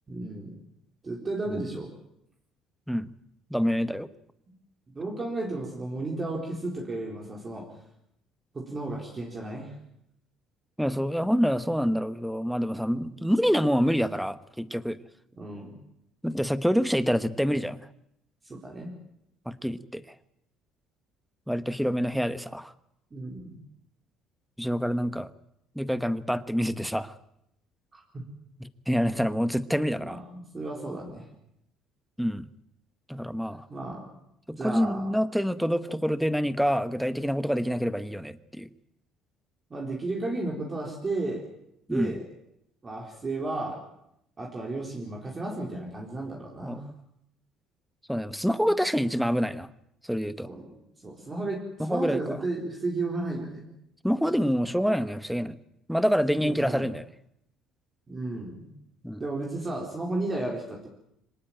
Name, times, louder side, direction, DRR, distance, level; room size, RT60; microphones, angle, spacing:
voice 1, 0.1-0.6 1.0-1.9 4.9-7.7 8.5-9.7 15.4-15.7 18.4-19.0 23.1-23.6 27.9-28.3 29.9-31.3 33.7-34.1 34.6-35.1 39.7-41.5 41.9-42.2 42.8-43.8 44.4-46.9 48.6-48.7 50.4-53.7 56.3-56.9 58.1-58.7 59.2-60.9, right 2 dB, 20° right, -1 dB, 4.3 m, -33 dB
voice 2, 3.5-4.1 10.8-15.0 16.2-17.9 19.5-20.1 21.5-22.7 24.6-25.3 25.7-27.1 28.9-30.2 32.2-32.5 33.1-33.7 34.5-38.7 41.9-42.1 46.6-46.8 48.1-49.7 50.1-50.5 51.8-52.4 54.0-55.6 55.9-57.0 59.0-59.2, equal, ahead, 13 dB, 1.0 m, -27 dB
25.5 x 18.5 x 9.0 m, 0.78 s
cardioid pair, 140°, 0 cm